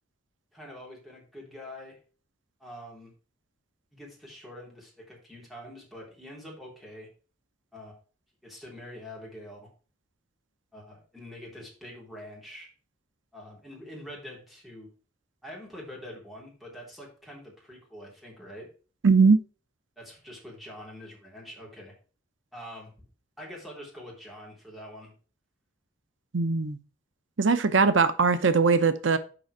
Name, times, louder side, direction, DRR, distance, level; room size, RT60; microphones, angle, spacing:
voice 1, 0.5-2.0 2.6-3.1 3.9-7.1 7.7-8.0 8.4-9.7 10.7-12.7 13.3-14.9 15.4-18.7 20.0-21.9 22.5-22.9 23.4-25.1, left 1 dB, ahead, 3.5 m, -45 dB
voice 2, 19.0-19.4 26.3-26.8 27.4-29.2, right 4 dB, 80° right, 0.8 m, -20 dB
6.9 x 5.2 x 4.8 m
head